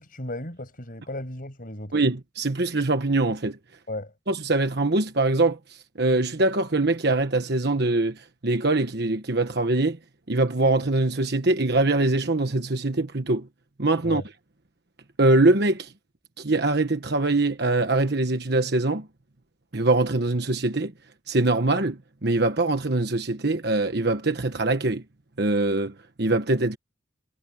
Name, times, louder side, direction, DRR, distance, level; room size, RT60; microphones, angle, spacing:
voice 1, 0.0-2.0 3.9-4.1 14.0-14.2, left 1 dB, 45° left, 6.8 m, -35 dB
voice 2, 1.9-3.6 4.3-10.0 10.3-13.5 13.8-14.2 15.2-15.9 16.4-19.1 19.7-20.9 21.3-25.0 25.4-26.8, right 2 dB, 55° right, 1.3 m, -23 dB
head